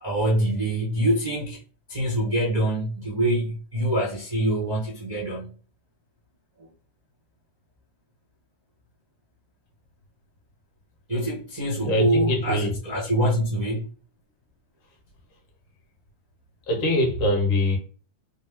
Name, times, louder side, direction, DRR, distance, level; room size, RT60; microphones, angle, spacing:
voice 1, 0.0-1.6 1.9-5.6 11.1-13.9, right 1 dB, 60° right, 0.4 m, -25 dB
voice 2, 11.8-12.7 16.7-17.8, left 1 dB, 60° left, 1.8 m, -23 dB
5.0 x 2.1 x 3.6 m
omnidirectional pair, 3.4 m